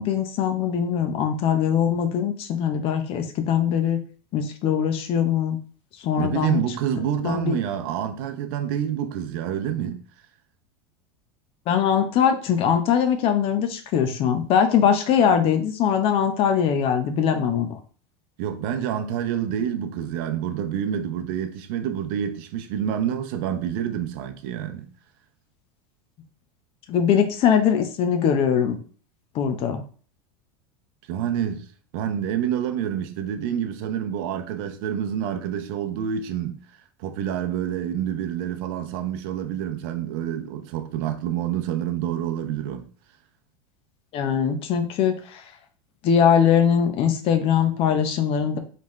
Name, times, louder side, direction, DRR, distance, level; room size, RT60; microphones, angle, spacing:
voice 1, 0.0-4.0 4.3-5.6 6.0-6.6 7.2-7.6 11.7-17.8 26.9-28.8 29.3-29.8 44.1-45.4 46.0-48.6, left 8 dB, 50° left, 0.9 m, -21 dB
voice 2, 6.2-10.0 18.4-24.9 31.1-31.6 31.9-36.6 37.0-42.9, right 9 dB, 65° right, 0.7 m, -28 dB
4.2 x 3.4 x 3.2 m
hypercardioid pair, 105°, 13 cm